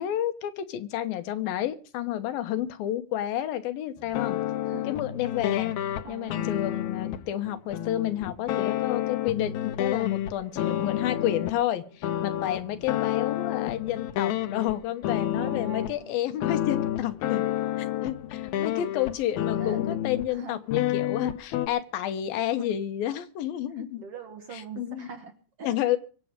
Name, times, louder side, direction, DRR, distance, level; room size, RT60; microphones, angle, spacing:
voice 1, 0.0-4.4 4.9-5.7 6.1-17.4 17.8-24.0 24.5-25.1 25.6-26.0, left 12 dB, 90° left, 9 dB, 2.9 m, -30 dB
sound 1, 4.0-11.6 12.0-14.8 15.0-15.9 16.4-20.3 20.7-21.7, left 12 dB, 70° left, 1.9 m, -29 dB
voice 2, 6.0-6.5 15.3-16.1 19.6-20.6 23.8-25.7, right 5 dB, 55° right, 6 dB, 1.7 m, -42 dB
24.0 x 8.4 x 5.1 m, 0.40 s
omnidirectional pair, 4.0 m